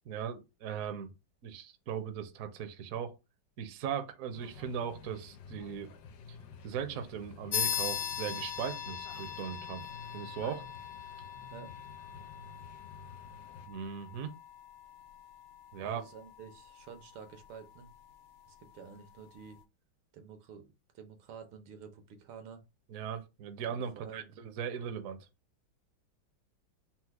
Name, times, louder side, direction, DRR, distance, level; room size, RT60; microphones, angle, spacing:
voice 1, 0.1-1.1 1.4-3.1 3.6-5.9 6.6-9.9 10.1-10.7 13.7-14.3 15.7-16.0 22.9-25.3, right 8 dB, 65° right, 0.8 m, -38 dB
sound 1, 4.3-13.7, left 5 dB, 70° left, 1.2 m, -51 dB
sound 2, 7.5-17.5, left 9 dB, 90° left, 1.5 m, -40 dB
voice 2, 15.8-17.9 18.5-19.6 20.1-22.6 23.7-24.4, right 6 dB, 85° right, 1.7 m, -50 dB
4.4 x 2.1 x 4.6 m
omnidirectional pair, 2.2 m